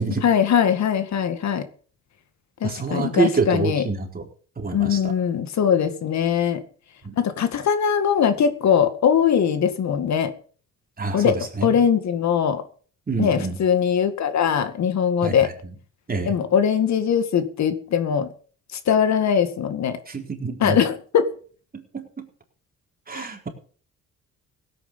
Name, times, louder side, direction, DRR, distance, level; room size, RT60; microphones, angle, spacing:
voice 1, 0.0-1.7 2.6-3.8 4.7-6.6 7.2-10.3 11.1-12.6 13.2-15.5 16.2-18.3 18.9-20.0 20.6-21.3 23.1-23.3, left 8 dB, 65° left, 10 dB, 2.1 m, -21 dB
voice 2, 2.6-4.2 4.6-5.1 7.0-7.1 11.0-11.8 13.1-13.5 15.2-15.5 16.1-16.3 20.1-20.8 21.7-22.3 23.1-23.5, right 4 dB, 30° right, 2 dB, 4.1 m, -26 dB
16.5 x 9.3 x 5.6 m, 0.42 s
cardioid pair, 90°, 30 cm